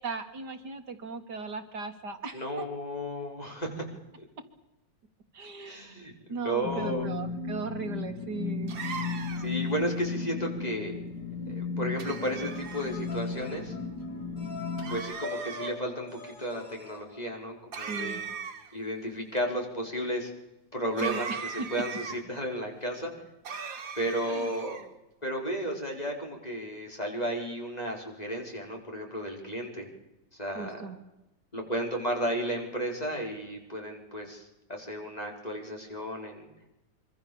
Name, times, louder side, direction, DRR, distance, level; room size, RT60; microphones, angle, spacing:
voice 1, 0.0-2.6 5.3-6.0 6.3-8.8 17.9-18.2 21.0-21.4 24.2-24.5 30.6-31.0, right 4 dB, 60° right, 7 dB, 2.3 m, -37 dB
voice 2, 2.3-3.9 4.2-4.3 5.7-7.1 9.4-11.0 11.5-13.7 14.9-18.3 18.7-20.3 20.7-23.1 23.9-24.8 25.2-29.9 30.4-30.8 31.5-36.5, equal, 20° left, 1 dB, 4.9 m, -33 dB
sound 1, 6.6-15.0, left 4 dB, 65° left, 3.0 m, -35 dB
sound 2, 8.7-9.6 12.0-12.9 14.8-15.7 17.7-18.8 21.0-22.2 23.4-24.9, right 6 dB, 90° right, 2.7 m, -38 dB
sound 3, 12.4-17.8, left 3 dB, 80° left, 7.2 m, -44 dB
25.0 x 25.0 x 7.1 m, 0.93 s
omnidirectional pair, 2.0 m